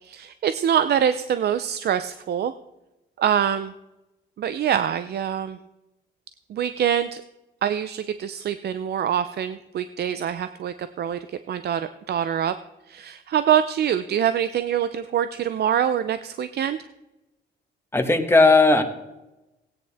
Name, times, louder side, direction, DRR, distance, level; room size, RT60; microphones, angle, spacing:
voice 1, 0.0-2.5 3.2-3.7 4.4-5.6 6.5-7.2 7.6-12.5 12.9-16.8, right 9 dB, 55° right, 12 dB, 0.5 m, -24 dB
voice 2, 17.9-18.8, left 3 dB, 10° left, 5 dB, 1.5 m, -16 dB
17.0 x 9.3 x 3.5 m, 0.97 s
cardioid pair, 90°, 20 cm